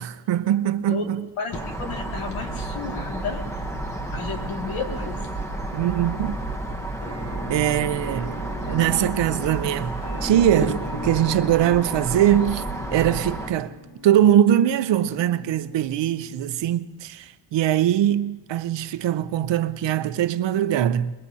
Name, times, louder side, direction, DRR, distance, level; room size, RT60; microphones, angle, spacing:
voice 1, 0.0-1.2 5.7-6.4 7.5-8.4 8.7-9.9 10.2-12.7 12.9-13.7 14.0-21.1, right 11 dB, 65° right, 0.7 m, -22 dB
voice 2, 0.9-3.5 4.1-5.3 8.6-8.8, left 4 dB, 90° left, 2.3 m, -32 dB
sound 1, 1.5-13.5, right 2 dB, 5° left, 0.9 m, -31 dB
sound 2, 3.0-3.3 3.7-3.9 4.2-6.1 6.8-7.0 7.3-9.1 9.6-10.7, right 7 dB, 25° right, 0.6 m, -40 dB
Musical instrument, 7.0-16.8, left 1 dB, 55° left, 7.0 m, -40 dB
24.0 x 21.5 x 2.8 m
cardioid pair, 150°, 48 cm